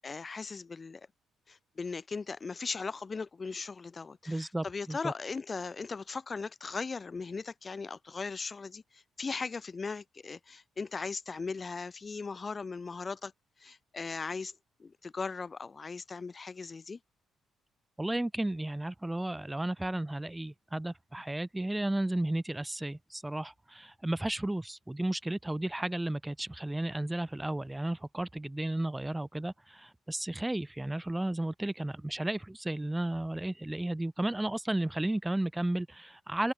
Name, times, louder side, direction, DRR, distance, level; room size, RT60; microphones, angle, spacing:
voice 1, 0.0-1.0 1.5-13.3 13.6-17.0, left 4 dB, 30° left, 2.0 m, -38 dB
voice 2, 4.3-5.1 18.0-36.5, right 1 dB, 10° right, 1.6 m, -33 dB
cardioid pair, 90°, 0 cm